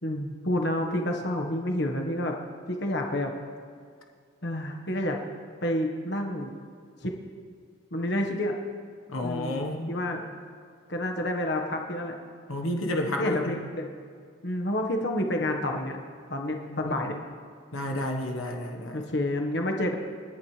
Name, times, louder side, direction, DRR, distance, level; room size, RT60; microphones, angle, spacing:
voice 1, 0.0-2.4 2.7-3.3 4.4-5.2 5.6-6.5 7.0-7.1 7.9-8.5 9.2-9.6 9.9-10.2 10.9-12.2 13.2-13.9 14.4-16.0 16.3-17.2 18.9-19.9, left 1 dB, 55° left, 2 dB, 1.4 m, -29 dB
voice 2, 9.1-10.0 12.5-13.6 16.7-16.8 17.7-19.0, left 1 dB, 80° left, 2 dB, 1.3 m, -31 dB
29.5 x 11.0 x 3.3 m, 2.1 s
head